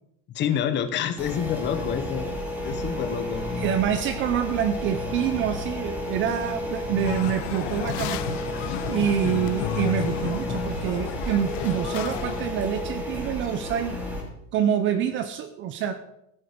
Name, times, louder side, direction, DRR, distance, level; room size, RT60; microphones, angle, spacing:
voice 1, 0.3-2.3 2.6-3.4, left 9 dB, 25° left, 10 dB, 1.1 m, -27 dB
sound 1, 0.8-1.9 2.2-4.8 5.3-6.2 6.5-6.6 6.8-7.8 8.4-11.0 11.8-13.0 13.3-14.3 14.6-14.7 15.0-15.3, right 1 dB, 70° right, 4.7 m, -52 dB
sound 2, 1.2-14.2, left 1 dB, 5° right, 3.0 m, -32 dB
voice 2, 3.5-8.4 8.9-14.0 14.5-15.9, right 9 dB, 25° right, 10 dB, 0.6 m, -26 dB
sound 3, 7.0-12.5, left 14 dB, 50° left, 0.8 m, -32 dB
15.0 x 12.5 x 5.1 m, 0.82 s
supercardioid pair, 165°, 44 cm